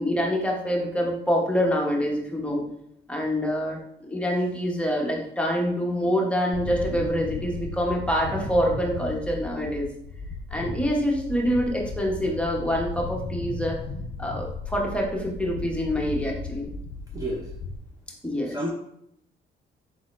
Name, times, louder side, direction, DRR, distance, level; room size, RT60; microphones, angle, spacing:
voice 1, 0.0-2.6 3.1-9.9 10.5-13.8 14.2-16.7 18.2-18.6, equal, 5° left, -1 dB, 0.9 m, -26 dB
sound 1, 6.5-17.8, left 3 dB, 65° left, 0.5 m, -35 dB
voice 2, 17.1-17.5 18.4-18.7, right 1 dB, 20° right, -1 dB, 0.6 m, -30 dB
4.0 x 3.9 x 2.5 m, 0.76 s
cardioid pair, 90°, 20 cm